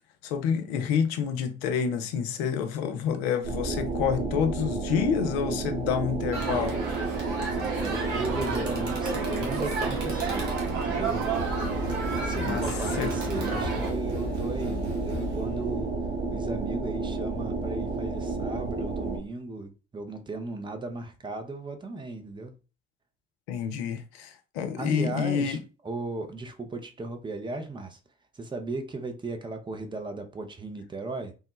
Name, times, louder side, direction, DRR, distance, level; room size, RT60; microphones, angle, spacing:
voice 1, 0.2-6.8 12.4-12.6 13.0-13.1 23.5-25.6, left 7 dB, 70° left, 0.5 m, -28 dB
sound 1, 3.4-19.2, right 3 dB, 35° right, 1.4 m, -31 dB
Crowd, 6.3-13.9, right 4 dB, 65° right, 1.0 m, -33 dB
voice 2, 7.8-11.3 12.2-15.9 16.3-22.5 24.8-25.6 25.8-28.0 28.3-31.3, right 3 dB, 15° right, 0.6 m, -36 dB
sound 2, 9.6-10.2 11.0-11.1 11.3-15.5, left 3 dB, 90° right, 0.9 m, -37 dB
3.4 x 2.1 x 3.0 m
figure-of-eight pair, 50°, 32 cm